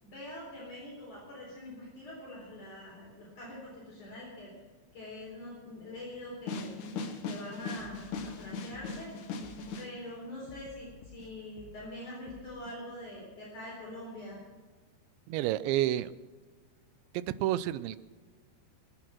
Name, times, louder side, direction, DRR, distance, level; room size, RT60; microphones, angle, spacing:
voice 1, 0.0-4.5 4.9-6.7 7.2-9.1 9.8-14.4, left 1 dB, 45° left, -4 dB, 5.2 m, -44 dB
sound 1, 6.5-9.9, left 4 dB, 65° left, 2.1 m, -39 dB
sound 2, 7.8-9.1 9.4-9.9 10.5-11.9 12.3-12.8, left 8 dB, 85° left, 3.0 m, -54 dB
voice 2, 15.3-16.1 17.1-18.0, right 13 dB, 85° right, 15 dB, 2.9 m, -29 dB
24.0 x 9.5 x 6.0 m, 1.4 s
omnidirectional pair, 5.2 m